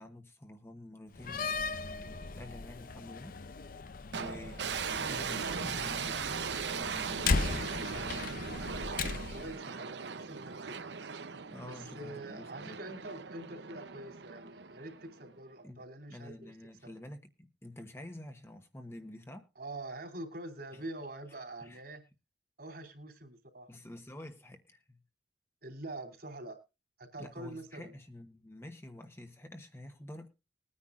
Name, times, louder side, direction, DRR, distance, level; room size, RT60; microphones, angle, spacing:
voice 1, 0.0-8.3 11.5-12.8 15.6-15.8 16.1-19.5 20.7-20.8 21.6-21.8 23.7-25.0 27.2-30.3, left 1 dB, 15° left, 1.2 m, -49 dB
Slam, 1.1-9.5, left 4 dB, 55° left, 0.6 m, -37 dB
sound 1, 4.1-15.4, right 6 dB, 80° right, 0.8 m, -39 dB
voice 2, 9.1-10.9 11.7-16.5 16.8-16.9 19.5-22.0 22.6-23.7 25.6-26.6 27.0-27.9, right 2 dB, 60° right, 3.3 m, -45 dB
21.0 x 9.8 x 2.5 m
head